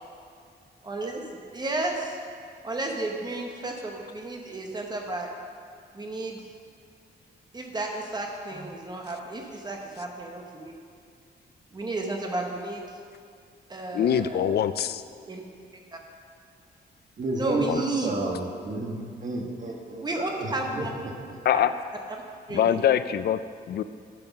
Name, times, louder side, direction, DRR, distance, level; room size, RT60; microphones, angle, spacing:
voice 1, 0.8-2.2 2.6-5.3 5.9-6.4 7.5-10.7 11.7-12.9 13.7-14.6 15.3-15.4 15.9-16.0 17.4-18.1 20.0-20.9 21.5-21.7 22.5-22.8, right 2 dB, 25° right, 1 dB, 1.0 m, -32 dB
voice 2, 13.9-15.0 17.7-17.8 21.5-21.7 22.5-23.4 23.7-23.8, left 9 dB, 65° left, 13 dB, 0.4 m, -23 dB
voice 3, 17.2-21.4, right 2 dB, 45° right, 0 dB, 1.3 m, -32 dB
11.0 x 6.2 x 5.9 m, 2.2 s
wide cardioid pair, 170°, 18 cm